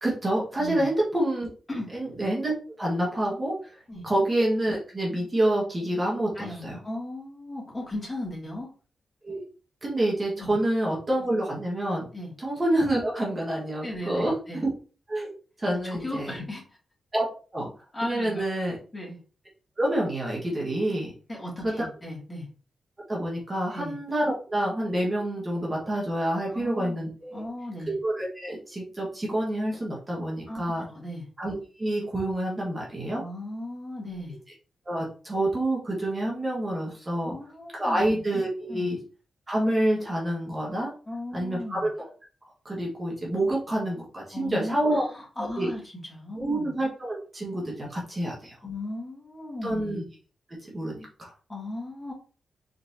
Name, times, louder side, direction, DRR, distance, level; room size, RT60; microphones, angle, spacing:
voice 1, 0.0-1.5 1.9-2.5 2.8-6.8 9.2-9.4 9.8-12.1 12.4-14.7 15.1-15.3 15.6-16.3 17.1-17.2 17.5-17.7 18.0-18.8 19.8-21.1 21.6-21.8 23.1-27.4 27.9-30.8 31.4-33.2 34.8-37.3 37.7-39.0 39.5-40.9 41.3-42.1 42.6-45.0 45.4-45.7 46.4-48.6 49.6-50.0 50.6-51.3, right 1 dB, 25° right, -3 dB, 1.5 m, -27 dB
voice 2, 6.3-8.7 10.4-10.5 12.1-12.3 13.8-14.6 15.7-16.6 17.9-19.2 21.3-22.5 23.7-23.9 26.5-27.0 27.3-27.9 30.5-31.2 33.1-34.4 37.2-38.2 38.7-39.0 41.1-41.9 44.3-45.8 46.1-46.7 48.6-50.0 51.5-52.1, left 1 dB, 20° left, -4 dB, 2.6 m, -37 dB
4.3 x 4.0 x 2.8 m, 0.38 s
cardioid pair, 90°, 0 cm